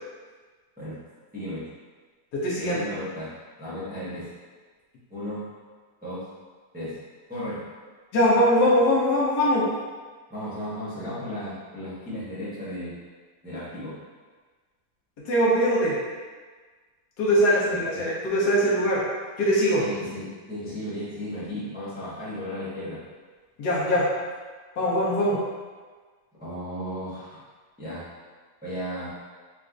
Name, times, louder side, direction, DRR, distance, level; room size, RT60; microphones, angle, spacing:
voice 1, 1.3-1.7 2.6-3.3 3.6-4.3 5.1-5.4 6.0-6.2 6.7-7.0 7.3-7.6 10.3-12.9 13.4-14.0 17.7-18.0 19.8-23.0 26.4-27.4 27.8-28.0 28.6-29.1, equal, 10° right, -12 dB, 0.7 m, -34 dB
voice 2, 2.3-2.8 8.1-9.6 15.3-16.0 17.2-19.0 19.4-19.8 23.6-24.1 24.8-25.4, equal, 70° left, -7 dB, 1.3 m, -21 dB
4.1 x 2.5 x 2.4 m, 1.4 s
omnidirectional pair, 1.8 m